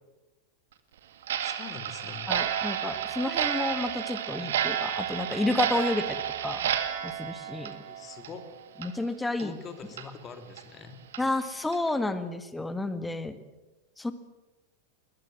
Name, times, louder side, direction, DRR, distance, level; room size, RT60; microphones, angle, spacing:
Clock, 1.2-8.5 8.8-8.9 9.4-9.5 10.0-10.1 10.6-10.7 11.1-11.2 11.7-11.9, right 10 dB, 60° right, 2.0 m, -31 dB
voice 1, 1.4-2.3 7.9-8.4 9.4-11.0, left 6 dB, 25° left, 8 dB, 2.7 m, -44 dB
voice 2, 2.3-6.7 7.0-7.8 8.8-9.6 11.2-13.4 14.0-14.1, left 2 dB, 5° left, 11 dB, 1.7 m, -31 dB
21.0 x 20.5 x 7.6 m, 1.1 s
figure-of-eight pair, 90°, 0 cm